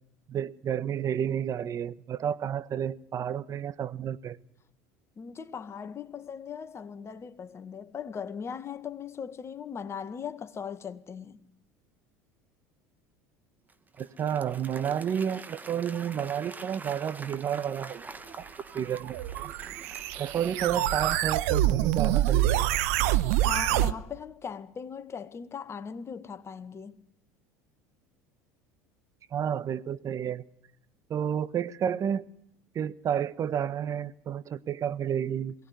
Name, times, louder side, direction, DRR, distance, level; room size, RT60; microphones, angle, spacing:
voice 1, 0.3-4.4 14.0-18.1 18.4-18.5 18.7-19.5 20.2-22.8 29.3-30.4 31.1-32.2 32.7-35.5, right 9 dB, 40° right, 1.2 m, -31 dB
voice 2, 5.2-11.4 23.1-27.0, left 6 dB, 30° left, 1.8 m, -39 dB
Applause / Crowd, 13.7-21.5, right 3 dB, 20° right, 1.6 m, -46 dB
sound 1, 18.9-23.9, right 13 dB, 70° right, 1.0 m, -26 dB
22.0 x 18.0 x 9.5 m
hypercardioid pair, 75°, 8 cm